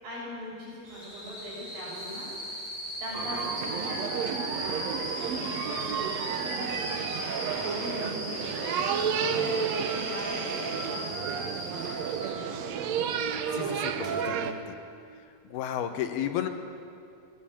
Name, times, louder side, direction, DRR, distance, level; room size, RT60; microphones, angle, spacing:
voice 1, 0.0-2.6 3.0-4.9 5.2-12.6 15.8-16.1, equal, 65° right, -10 dB, 8.0 m, -41 dB
sound 1, 0.8-12.4 13.9-14.1, equal, 15° right, 6.2 m, -38 dB
sound 2, 3.1-14.5, right 7 dB, 85° right, 1.5 m, -32 dB
voice 2, 9.2-9.6 13.5-14.8 15.4-16.5, left 10 dB, 75° left, 6 dB, 3.0 m, -34 dB
sound 3, 12.0-15.7, right 3 dB, 50° left, 4.0 m, -46 dB
21.0 x 17.0 x 8.7 m, 2.5 s
omnidirectional pair, 4.5 m